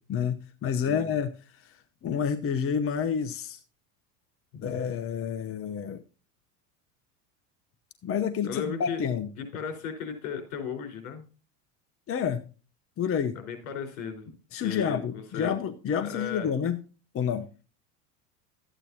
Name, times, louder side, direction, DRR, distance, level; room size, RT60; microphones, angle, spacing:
voice 1, 0.1-1.8 2.0-3.6 4.6-6.0 8.0-9.3 12.1-12.5 13.0-13.4 14.5-16.8 17.1-17.5, left 7 dB, 30° left, 0.9 m, -29 dB
voice 2, 0.8-1.2 4.5-4.7 8.4-9.0 9.5-11.2 13.3-15.5 16.0-16.5, left 6 dB, 75° left, 4.5 m, -36 dB
13.5 x 9.1 x 2.8 m
supercardioid pair, 100°, 42 cm